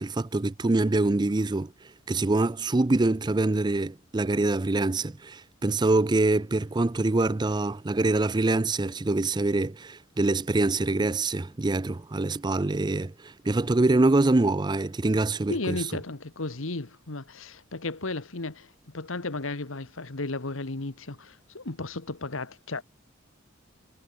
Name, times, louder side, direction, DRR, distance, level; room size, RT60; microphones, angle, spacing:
voice 1, 0.0-1.7 2.1-15.8, right 2 dB, 20° right, 0.5 m, -25 dB
voice 2, 15.5-22.8, left 2 dB, 75° left, 1.6 m, -34 dB
head